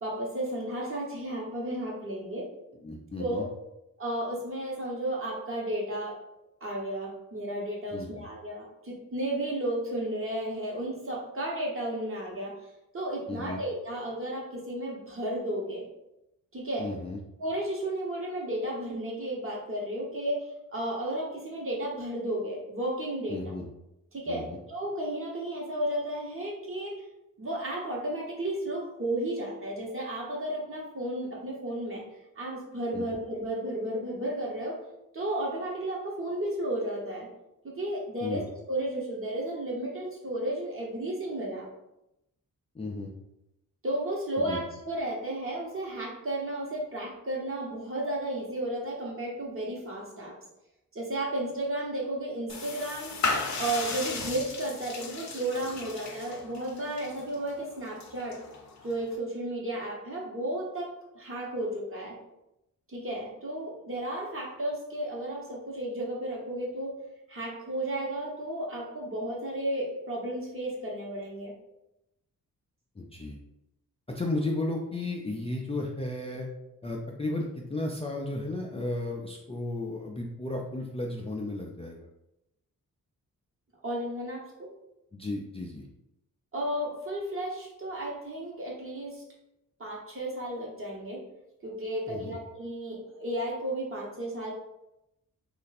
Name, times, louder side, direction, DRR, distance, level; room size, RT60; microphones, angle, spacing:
voice 1, 0.0-2.5 3.2-3.4 4.0-6.2 6.6-12.5 12.9-15.9 16.5-16.9 17.4-23.6 24.1-26.9 27.4-32.0 32.4-34.8 35.1-37.3 37.6-41.7 43.8-50.3 50.9-53.2 53.6-58.4 58.8-62.2 62.9-66.9 67.3-71.5 83.8-84.7 86.5-89.2 89.8-91.2 91.6-94.5, right 1 dB, 40° right, -2 dB, 1.2 m, -33 dB
voice 2, 2.8-3.5 7.9-8.1 13.3-13.6 16.8-17.2 23.3-23.6 24.3-24.6 32.9-33.0 38.2-38.4 42.7-43.1 44.4-44.6 73.0-73.4 74.1-76.5 76.8-82.0 85.1-85.8 92.1-92.4, left 2 dB, 15° left, -1 dB, 0.4 m, -34 dB
sound 1, 52.5-59.2, left 4 dB, 55° left, 0.7 m, -36 dB
3.1 x 2.5 x 4.0 m, 0.88 s
cardioid pair, 85°, 34 cm